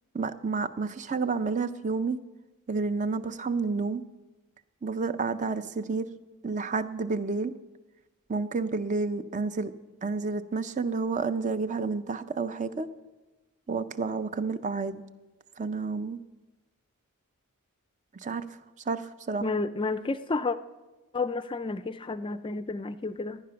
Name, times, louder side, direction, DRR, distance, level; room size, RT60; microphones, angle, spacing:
voice 1, 0.1-2.2 2.7-4.0 4.8-6.1 6.4-7.5 8.3-9.7 10.0-12.9 13.7-15.0 15.6-16.2 18.2-18.4 18.9-19.5, right 4 dB, 35° right, 12 dB, 0.5 m, -30 dB
voice 2, 19.4-20.6 21.1-23.4, left 3 dB, 20° left, 13 dB, 0.4 m, -31 dB
15.5 x 10.5 x 5.8 m, 1.2 s
head